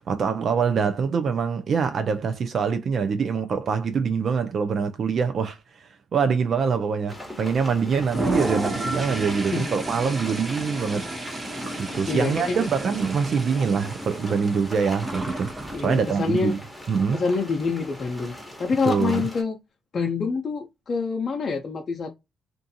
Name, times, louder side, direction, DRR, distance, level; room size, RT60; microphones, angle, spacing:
voice 1, 0.0-11.1 11.8-15.5 15.8-16.6 16.9-17.2 18.8-19.3, right 6 dB, 55° right, 0.4 m, -24 dB
sound 1, 7.1-19.4, left 1 dB, ahead, 1.1 m, -41 dB
Toilet flush, 8.0-15.8, right 1 dB, 25° right, 0.7 m, -31 dB
voice 2, 12.1-12.7 15.7-16.6 17.1-19.6 19.9-22.1, left 4 dB, 45° left, 0.5 m, -26 dB
2.6 x 2.3 x 2.7 m
cardioid pair, 90°, 0 cm